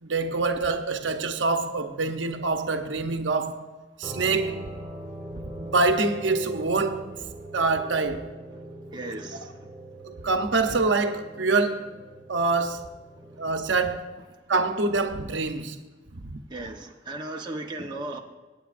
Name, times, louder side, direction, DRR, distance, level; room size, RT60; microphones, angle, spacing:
voice 1, 0.0-3.7 4.0-4.6 5.3-7.1 7.5-8.3 10.0-11.9 12.3-12.9 13.4-14.1 14.5-15.8 16.2-16.4, right 3 dB, 85° right, 0.9 m, -25 dB
sound 1, 4.0-13.5, right 1 dB, 5° right, 2.0 m, -41 dB
voice 2, 8.9-9.6 15.6-15.7 16.5-18.2, right 2 dB, 25° right, 1.0 m, -36 dB
22.0 x 9.2 x 2.5 m
head